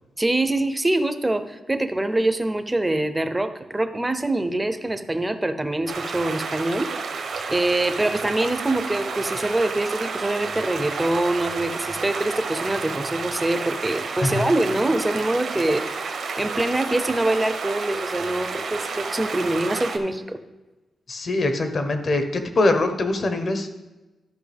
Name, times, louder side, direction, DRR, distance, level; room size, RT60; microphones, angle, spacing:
voice 1, 0.2-6.9 7.5-15.8 16.4-20.4, right 2 dB, 10° right, 9 dB, 0.6 m, -24 dB
sound 1, 5.9-20.0, right 4 dB, 65° right, 0.9 m, -31 dB
voice 2, 21.1-23.7, left 2 dB, 45° left, 7 dB, 0.9 m, -23 dB
12.5 x 5.6 x 3.4 m, 1.1 s
wide cardioid pair, 130°, 0 cm